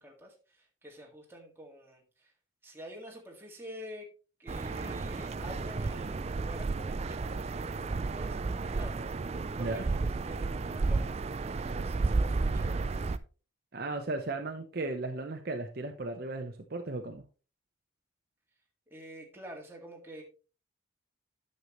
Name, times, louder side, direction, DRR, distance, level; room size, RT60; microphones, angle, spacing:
voice 1, 0.0-2.3 2.6-4.1 4.4-13.0 18.9-20.2, equal, 10° right, 1.9 m, -48 dB
sound 1, 4.5-13.2, right 3 dB, 30° right, 0.4 m, -32 dB
voice 2, 13.7-17.2, right 2 dB, 50° right, 0.7 m, -36 dB
9.5 x 6.7 x 3.0 m
head